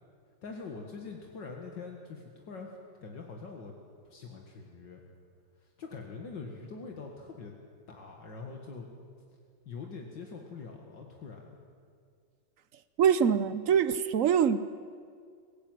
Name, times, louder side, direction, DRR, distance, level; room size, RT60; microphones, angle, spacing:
voice 1, 0.4-2.7 3.0-3.8 4.0-5.0 5.6-7.5 7.9-8.9 9.7-11.6, left 4 dB, 70° left, 1 dB, 2.5 m, -44 dB
voice 2, 13.0-14.6, right 8 dB, 60° right, 14 dB, 0.8 m, -24 dB
24.0 x 16.0 x 9.3 m, 2.2 s
omnidirectional pair, 2.0 m